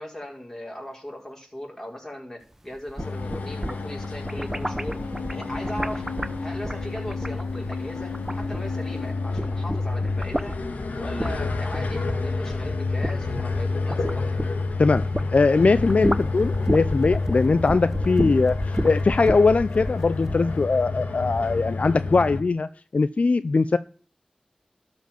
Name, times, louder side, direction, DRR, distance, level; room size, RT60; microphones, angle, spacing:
voice 1, 0.0-5.0 5.3-6.1 6.4-10.6 11.0-14.3, left 1 dB, 20° left, -1 dB, 5.0 m, -38 dB
sound 1, 2.8-9.0 9.3-15.3 15.6-20.4, right 1 dB, 15° right, 0.8 m, -32 dB
sound 2, 3.0-22.4, left 3 dB, 85° left, 1.6 m, -29 dB
voice 2, 15.3-23.8, left 3 dB, 60° left, 13 dB, 0.5 m, -21 dB
12.5 x 5.2 x 7.3 m, 0.43 s
cardioid pair, 45°, 3 cm